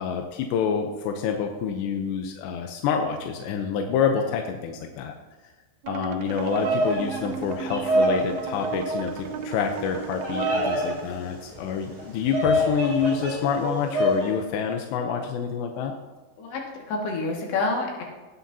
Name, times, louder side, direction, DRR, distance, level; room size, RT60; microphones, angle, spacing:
voice 1, 0.0-5.1 5.9-15.9, left 6 dB, 75° left, 4 dB, 2.6 m, -27 dB
sound 1, 5.8-11.0, right 6 dB, 85° right, 2.3 m, -35 dB
Bird vocalization bird call bird song, 6.3-14.3, equal, 15° right, 3.9 m, -27 dB
voice 2, 16.4-18.0, left 3 dB, 60° left, -1 dB, 3.8 m, -28 dB
17.5 x 9.8 x 2.8 m, 1.3 s
omnidirectional pair, 5.8 m